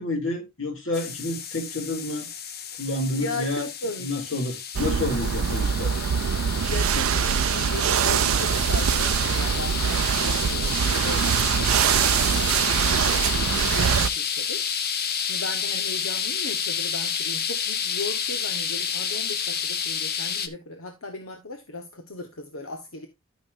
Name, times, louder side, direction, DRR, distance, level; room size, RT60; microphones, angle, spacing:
voice 1, 0.0-2.3 2.8-3.7 4.0-5.9, left 2 dB, 65° left, 2.8 m, -29 dB
sound 1, 0.9-20.5, left 7 dB, 45° left, 0.9 m, -30 dB
voice 2, 3.2-4.1 6.7-14.6 15.2-23.1, left 2 dB, 85° left, 1.2 m, -37 dB
sound 2, 4.7-14.1, right 8 dB, 75° right, 0.4 m, -23 dB
12.5 x 6.3 x 2.6 m
head